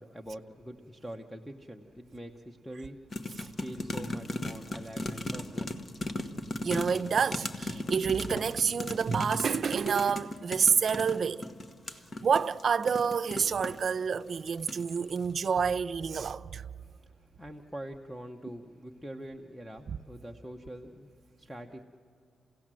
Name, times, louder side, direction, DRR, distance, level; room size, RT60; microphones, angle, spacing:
voice 1, 0.0-6.2 16.8-21.8, equal, 5° left, 0.9 m, -45 dB
sound 1, 3.1-13.9 14.5-14.9 15.2-15.3, left 2 dB, 35° left, 1.1 m, -37 dB
voice 2, 6.6-11.5 12.2-16.7 19.9-20.0, right 6 dB, 55° right, 0.6 m, -28 dB
28.5 x 17.0 x 7.6 m
cardioid pair, 105°, 0 cm